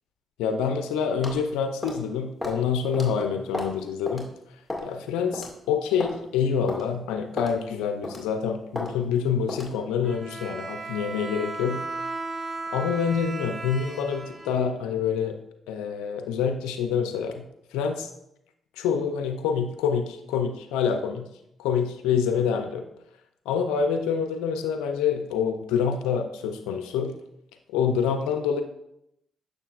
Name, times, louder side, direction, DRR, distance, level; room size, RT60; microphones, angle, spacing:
voice 1, 0.4-4.3 4.8-11.8 12.7-15.4 15.7-17.4 17.7-18.1 18.8-21.3 21.6-22.8 23.5-27.1 27.7-28.6, left 7 dB, 85° left, 6 dB, 0.4 m, -26 dB
sound 1, 1.2-1.4 1.8-2.0 2.4-2.6 2.9-3.1 3.5-3.8 4.1-4.2 4.7-4.9 5.3-5.5 6.0-6.2 6.7-6.8 7.4-7.6 8.0-8.3 8.8-8.9 9.5-9.7, left 1 dB, 5° left, 1.9 m, -33 dB
Bowed string instrument, 10.0-15.1, right 3 dB, 40° right, 0.8 m, -36 dB
6.6 x 6.5 x 2.4 m, 0.80 s
supercardioid pair, 50°, 0 cm